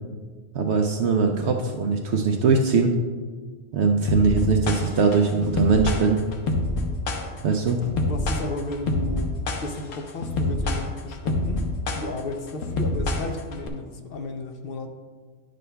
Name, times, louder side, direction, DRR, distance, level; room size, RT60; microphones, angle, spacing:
voice 1, 0.5-2.9 3.7-6.2 7.4-7.8, right 4 dB, 65° right, 3 dB, 0.8 m, -21 dB
sound 1, 4.1-13.7, left 2 dB, 85° left, 1.2 m, -26 dB
voice 2, 8.1-9.3 9.6-11.7 12.0-14.9, left 2 dB, 55° left, 5 dB, 0.7 m, -33 dB
11.0 x 6.4 x 2.2 m, 1.5 s
omnidirectional pair, 1.3 m